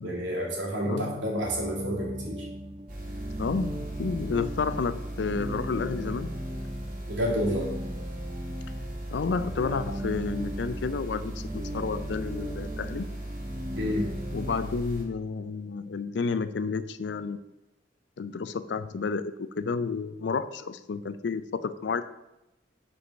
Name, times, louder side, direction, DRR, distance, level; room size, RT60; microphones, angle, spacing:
voice 1, 0.0-2.4 7.1-7.7 13.7-14.0, equal, 90° right, -2 dB, 2.2 m, -29 dB
voice 2, 0.8-1.3 3.4-6.3 9.1-13.0 14.3-17.4 18.2-22.0, left 4 dB, 75° left, 13 dB, 0.4 m, -31 dB
sound 1, 1.4-14.6, equal, 25° right, 0.6 m, -38 dB
sound 2, 2.9-15.0, right 1 dB, 50° right, 1.8 m, -38 dB
5.1 x 4.8 x 6.3 m, 0.95 s
head